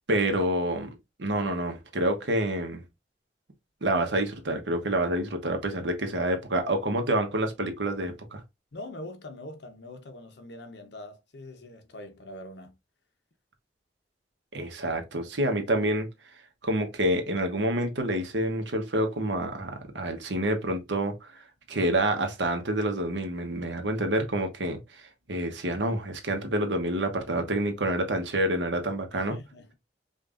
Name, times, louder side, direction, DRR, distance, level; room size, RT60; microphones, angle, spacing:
voice 1, 0.1-2.8 3.8-8.4 14.5-16.1 16.6-29.4, right 1 dB, 90° right, 1.0 m, -28 dB
voice 2, 8.7-12.8 29.1-29.7, left 1 dB, 75° left, 0.9 m, -43 dB
5.2 x 2.5 x 2.5 m
head